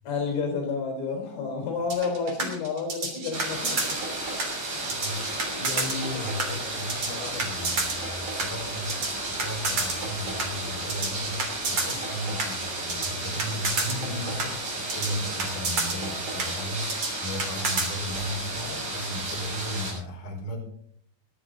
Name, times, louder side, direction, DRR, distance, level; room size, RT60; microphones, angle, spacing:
voice 1, 0.0-3.8, left 5 dB, 75° left, 2 dB, 6.1 m, -30 dB
sound 1, 1.9-17.9, right 3 dB, 35° right, 3.5 m, -30 dB
sound 2, 3.3-19.9, right 2 dB, 60° right, 9.3 m, -33 dB
voice 2, 4.6-20.6, left 1 dB, 50° left, -2 dB, 6.2 m, -36 dB
19.5 x 14.0 x 3.9 m, 0.63 s
omnidirectional pair, 5.8 m